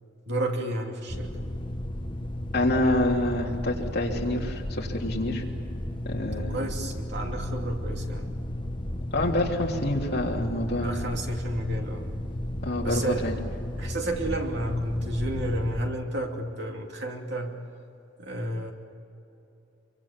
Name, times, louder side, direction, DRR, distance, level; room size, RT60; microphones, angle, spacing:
voice 1, 0.3-1.3 6.3-8.5 10.8-12.2 12.8-13.3 13.8-17.6 18.2-18.7, right 1 dB, 55° right, 2 dB, 2.8 m, -31 dB
sound 1, 1.1-15.9, left 1 dB, 25° left, 1.3 m, -33 dB
voice 2, 2.5-5.4 6.0-6.6 9.1-11.0 12.6-13.3, left 1 dB, 50° left, -1 dB, 3.4 m, -27 dB
26.0 x 24.5 x 7.5 m, 2.8 s
head